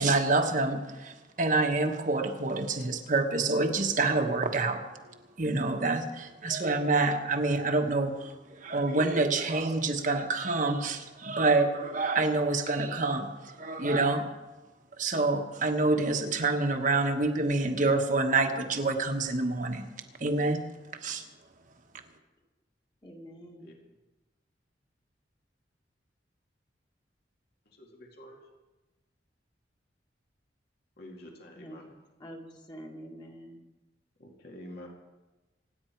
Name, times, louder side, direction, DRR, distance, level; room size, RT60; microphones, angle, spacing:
voice 1, 0.0-4.8 5.4-8.3 8.6-14.3 15.0-19.9 20.2-20.7 21.0-21.2, right 3 dB, 45° right, 1.3 m, -27 dB
voice 2, 23.0-23.7 31.6-33.6, equal, 25° left, 1.9 m, -46 dB
voice 3, 31.0-31.8 34.2-34.9, left 1 dB, 60° left, 2.4 m, -47 dB
26.0 x 9.7 x 4.6 m
head